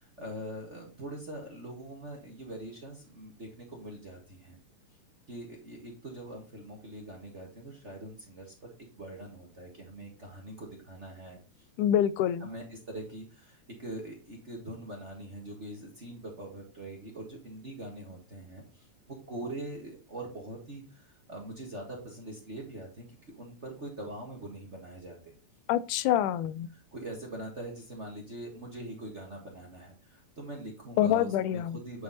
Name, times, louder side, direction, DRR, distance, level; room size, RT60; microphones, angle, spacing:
voice 1, 0.0-4.6 5.3-11.7 12.4-25.3 26.7-32.0, right 1 dB, 30° right, 1.4 m, -43 dB
voice 2, 11.8-12.5 25.7-26.7 31.0-31.8, left 11 dB, 85° left, 2.1 m, -26 dB
9.5 x 4.7 x 4.0 m
omnidirectional pair, 3.5 m